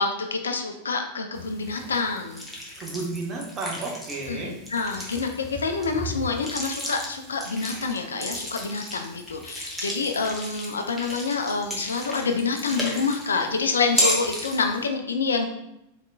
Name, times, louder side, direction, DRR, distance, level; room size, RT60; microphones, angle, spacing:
voice 1, 0.0-2.5 4.3-15.5, left 4 dB, 70° left, 5 dB, 0.4 m, -27 dB
sound 1, 1.4-14.9, equal, ahead, 0.9 m, -34 dB
voice 2, 2.8-4.6, right 3 dB, 25° right, -1 dB, 0.9 m, -32 dB
4.0 x 3.6 x 2.3 m, 0.84 s
figure-of-eight pair, 90°, 0 cm